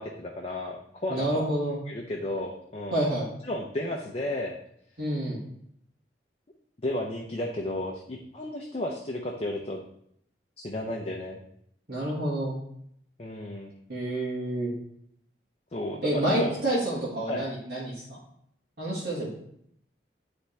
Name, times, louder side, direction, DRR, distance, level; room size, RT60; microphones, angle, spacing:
voice 1, 0.0-1.5 1.9-3.0 3.4-4.6 6.8-9.8 10.6-11.4 13.2-13.7 15.7-16.5 17.3-17.5, left 1 dB, 35° left, 0 dB, 0.6 m, -33 dB
voice 2, 1.1-1.8 2.9-3.3 5.0-5.4 11.9-12.5 13.9-14.7 16.0-18.0 18.8-19.3, right 1 dB, 55° right, -8 dB, 1.7 m, -28 dB
9.5 x 3.5 x 3.3 m, 0.70 s
head